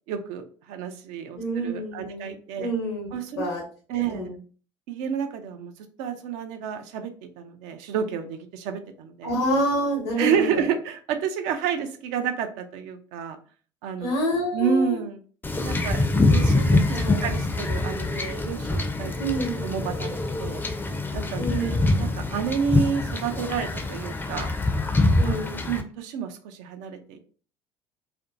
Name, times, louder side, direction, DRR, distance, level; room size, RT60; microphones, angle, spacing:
voice 1, 0.1-2.7 3.1-3.5 3.9-4.3 4.9-5.7 6.0-9.3 10.2-13.4 13.8-14.2 14.5-15.2 15.6-20.6 21.1-24.5 25.2-25.4 25.7-27.2, right 7 dB, 60° right, 7 dB, 0.4 m, -30 dB
voice 2, 1.4-2.3 2.6-3.6 3.9-4.4 9.2-10.6 14.0-15.0 16.9-17.3 19.2-19.6 21.4-21.9 25.2-25.6, right 1 dB, 80° left, -2 dB, 0.8 m, -28 dB
Wind / Ocean / Boat Water vehicle, 15.4-25.8, left 2 dB, 15° left, 0.4 m, -24 dB
2.5 x 2.1 x 2.5 m, 0.41 s
hypercardioid pair, 65°, 14 cm